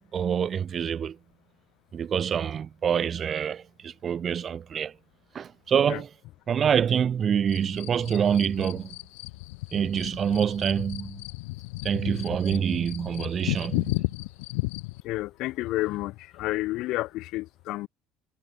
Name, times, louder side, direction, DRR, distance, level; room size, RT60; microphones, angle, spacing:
voice 1, 0.1-1.2 1.9-5.0 5.3-6.1 6.5-9.0 9.7-11.2 11.8-14.0, right 8 dB, 40° right, 1.0 m, -26 dB
sound 1, 7.5-15.0, left 25 dB, 90° left, 0.7 m, -34 dB
voice 2, 15.0-17.9, left 18 dB, 70° left, 1.3 m, -30 dB
supercardioid pair, 100°, 0 cm